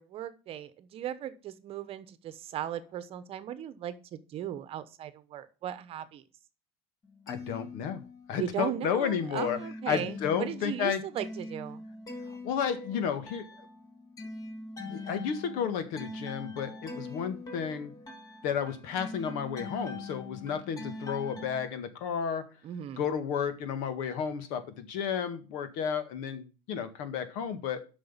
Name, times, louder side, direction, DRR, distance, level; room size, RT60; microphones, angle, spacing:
voice 1, 0.0-6.2 8.3-11.8 22.6-23.0, right 10 dB, 40° right, 13 dB, 1.0 m, -37 dB
sound 1, 7.0-8.5 8.8-21.7, left 2 dB, 25° left, 2.4 m, -43 dB
voice 2, 7.3-8.0 8.3-9.6 9.9-11.0 12.4-13.5 14.8-17.9 18.4-22.4 23.0-27.8, left 7 dB, 65° left, 10 dB, 1.8 m, -32 dB
7.7 x 6.1 x 7.3 m, 0.34 s
supercardioid pair, 135°, 15 cm